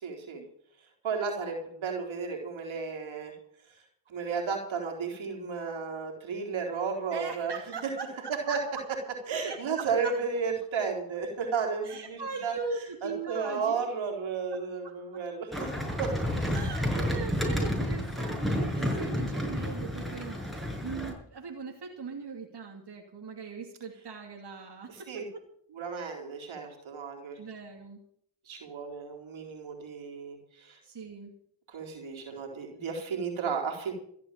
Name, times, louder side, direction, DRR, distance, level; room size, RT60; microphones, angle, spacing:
voice 1, 0.0-0.4 1.0-3.4 4.1-7.5 8.3-8.6 9.3-12.5 13.0-15.7 16.0-16.1 18.9-19.1 24.9-25.2 25.7-27.4 28.5-30.8 31.7-33.9, right 5 dB, 80° right, 1 dB, 4.0 m, -33 dB
voice 2, 7.1-8.8 9.4-10.1 11.8-13.8 14.5-15.2 16.5-25.2 27.4-28.0 30.8-31.3, right 4 dB, 55° right, 1 dB, 2.9 m, -40 dB
sound 1, 15.5-21.1, equal, ahead, 6.3 m, -30 dB
15.0 x 8.4 x 9.1 m, 0.67 s
supercardioid pair, 40°, 46 cm